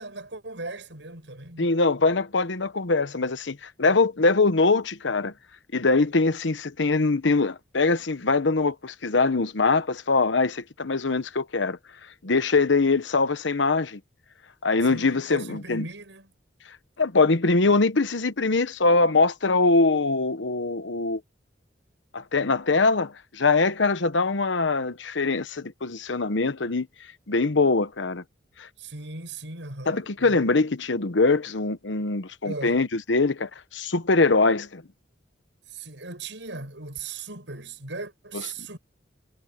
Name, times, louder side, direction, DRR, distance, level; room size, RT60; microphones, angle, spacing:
voice 1, 0.0-1.7 14.9-16.3 28.8-30.4 32.4-32.8 35.7-38.8, right 3 dB, 75° right, 6.8 m, -38 dB
voice 2, 1.6-5.3 5.7-11.8 12.2-14.0 14.6-15.9 17.0-21.2 22.1-26.9 27.3-28.2 28.6-28.7 29.9-34.8 38.3-38.4, left 3 dB, 80° left, 1.1 m, -23 dB
head